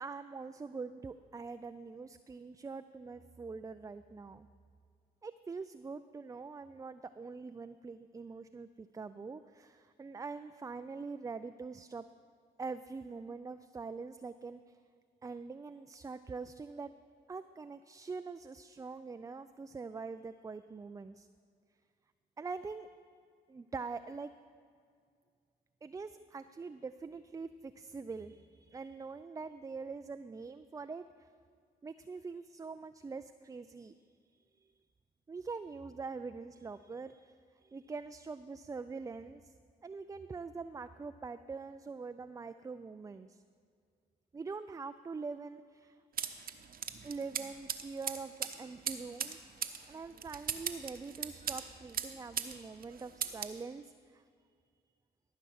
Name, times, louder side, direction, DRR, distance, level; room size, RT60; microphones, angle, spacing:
voice 1, 0.0-4.5 5.2-12.0 12.6-14.8 15.2-16.9 17.3-21.3 22.4-22.9 23.5-24.3 25.8-31.3 31.8-33.9 34.3-34.7 35.3-39.5 39.8-43.4 44.3-46.0 47.0-49.4 49.9-54.2, right 4 dB, 20° right, 11 dB, 0.3 m, -44 dB
sound 1, 46.2-52.6 52.8-53.6, right 7 dB, 50° right, 0.8 m, -39 dB
13.5 x 5.6 x 6.3 m, 2.2 s
supercardioid pair, 55°, 19 cm